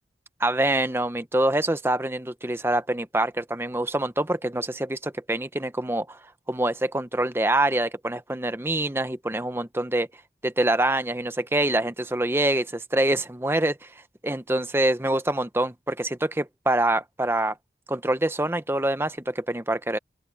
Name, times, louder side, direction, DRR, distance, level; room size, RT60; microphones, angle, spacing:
voice 1, 0.4-6.2 6.5-10.1 10.4-13.9 14.2-17.6 17.9-20.0, right 1 dB, 15° right, 0.8 m, -25 dB
open air
head